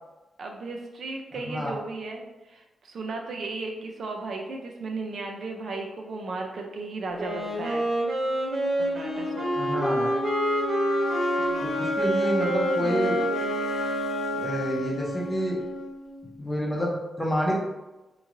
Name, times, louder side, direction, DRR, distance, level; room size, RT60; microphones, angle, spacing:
voice 1, 0.4-7.9 8.8-9.5 11.4-11.7, right 3 dB, 55° right, 2 dB, 0.4 m, -35 dB
voice 2, 1.3-1.7 9.6-10.1 11.6-13.2 14.3-15.6 16.4-17.6, equal, 10° left, -3 dB, 0.5 m, -28 dB
Wind instrument woodwind instrument, 7.2-14.8, equal, 40° right, 1.3 m, -28 dB
sound 1, 8.4-16.4, equal, 85° left, 0.4 m, -32 dB
3.0 x 2.7 x 2.4 m, 1.1 s
wide cardioid pair, 170°, 0 cm